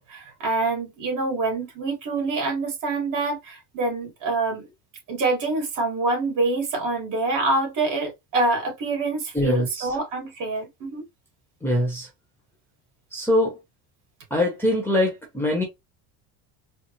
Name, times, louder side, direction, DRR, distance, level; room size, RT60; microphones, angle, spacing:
voice 1, 0.0-4.7 5.1-11.0, right 3 dB, 50° right, 2.4 m, -26 dB
voice 2, 9.3-9.9 11.6-12.1 13.1-13.5 14.3-15.6, left 1 dB, 5° left, 0.9 m, -23 dB
4.2 x 2.0 x 3.0 m
cardioid pair, 145°, 40 cm